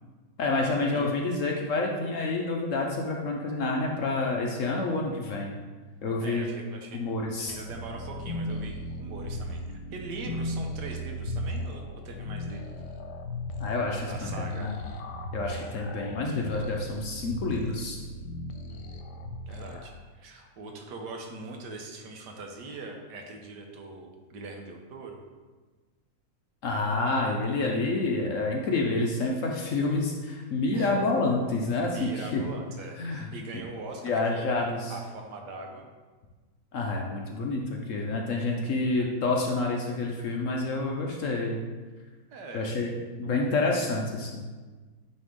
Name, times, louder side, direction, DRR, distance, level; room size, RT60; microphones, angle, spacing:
voice 1, 0.4-5.5 6.0-6.5 6.9-7.6 13.6-14.7 15.3-18.0 26.6-32.4 33.0-33.3 34.0-34.9 36.7-41.6 42.5-44.5, left 3 dB, 60° left, 0 dB, 0.9 m, -28 dB
voice 2, 6.2-7.0 7.4-12.8 14.1-14.7 18.7-18.9 19.5-25.2 30.7-30.9 31.9-34.6 34.9-35.9 38.6-39.1 42.3-42.8 43.2-43.3, right 3 dB, 85° right, 2 dB, 1.5 m, -42 dB
sound 1, 7.5-19.9, left 1 dB, 90° left, 1.3 m, -36 dB
9.0 x 3.3 x 3.6 m, 1.3 s
omnidirectional pair, 1.8 m